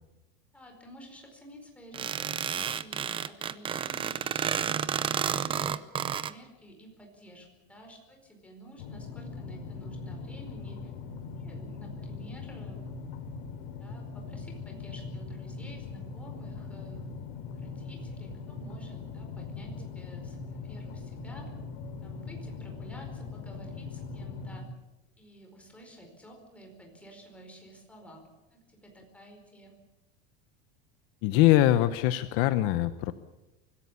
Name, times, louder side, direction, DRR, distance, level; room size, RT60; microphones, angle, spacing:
voice 1, 0.5-5.8 6.2-10.9 11.3-12.8 13.8-17.3 17.5-21.5 22.0-24.7 25.2-29.8, right 1 dB, 5° left, 2 dB, 4.7 m, -51 dB
sound 1, 1.9-6.3, right 8 dB, 20° right, 0.6 m, -31 dB
sound 2, 8.8-24.6, left 4 dB, 85° left, 3.4 m, -41 dB
voice 2, 31.2-33.1, left 14 dB, 50° left, 11 dB, 1.0 m, -23 dB
25.0 x 15.5 x 8.5 m, 1.0 s
supercardioid pair, 165°, 29 cm